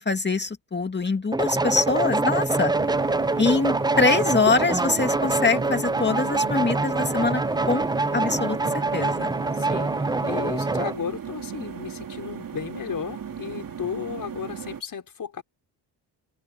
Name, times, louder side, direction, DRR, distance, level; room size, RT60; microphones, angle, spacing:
voice 1, 0.0-2.7 3.4-7.9 8.1-9.3, left 3 dB, 25° left, 2.2 m, -24 dB
sound 1, 1.3-11.0, right 3 dB, 10° right, 0.6 m, -25 dB
sound 2, 2.7-14.8, right 8 dB, 55° right, 3.1 m, -37 dB
voice 2, 9.6-15.4, left 7 dB, 55° left, 6.3 m, -34 dB
open air
cardioid pair, 80°, 41 cm